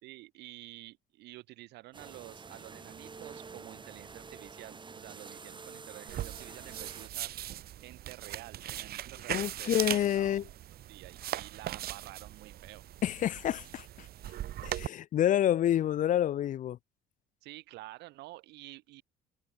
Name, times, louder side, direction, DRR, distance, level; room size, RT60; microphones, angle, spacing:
voice 1, 0.0-7.3 7.8-12.8 17.4-19.0, right 18 dB, 85° right, 4.1 m, -50 dB
sound 1, 1.9-7.1, right 5 dB, 30° right, 7.0 m, -48 dB
sound 2, 6.1-14.9, right 12 dB, 65° right, 3.7 m, -39 dB
voice 2, 9.3-10.4 13.0-13.9 14.6-16.8, left 11 dB, 50° left, 0.6 m, -28 dB
cardioid pair, 110°, 17 cm